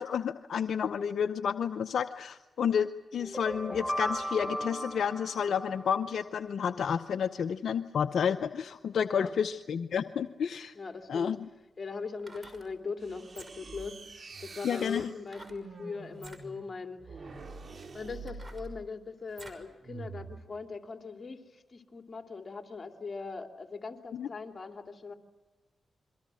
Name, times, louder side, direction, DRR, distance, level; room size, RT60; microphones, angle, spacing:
voice 1, 0.0-10.7 11.1-11.4 14.6-15.1 24.1-24.3, left 7 dB, 75° left, 10 dB, 0.7 m, -30 dB
sound 1, 3.2-6.3, equal, 5° left, 4.1 m, -36 dB
voice 2, 10.7-11.3 11.8-17.4 17.9-25.1, left 4 dB, 45° left, 5 dB, 2.9 m, -40 dB
sound 2, 12.1-12.7 13.2-13.8 15.3-15.6 16.1-16.4 17.2-17.3 17.8-19.7 20.1-20.2, right 2 dB, 30° right, 6.0 m, -51 dB
sound 3, 13.0-18.9 19.8-20.5, right 4 dB, 55° right, 3.6 m, -46 dB
27.0 x 23.5 x 6.3 m, 1.2 s
supercardioid pair, 45°, 0 cm